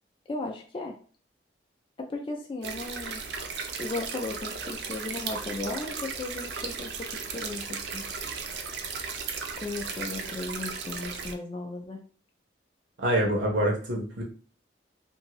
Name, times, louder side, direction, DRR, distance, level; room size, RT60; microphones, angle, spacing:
voice 1, 0.3-1.0 2.0-3.2 3.8-8.0 9.6-12.0, left 2 dB, 30° left, 2 dB, 0.3 m, -36 dB
sound 1, 2.6-11.3, right 5 dB, 65° right, 0.4 m, -36 dB
voice 2, 13.0-14.2, right 1 dB, 90° right, 0 dB, 0.9 m, -26 dB
2.6 x 2.6 x 2.9 m, 0.39 s
head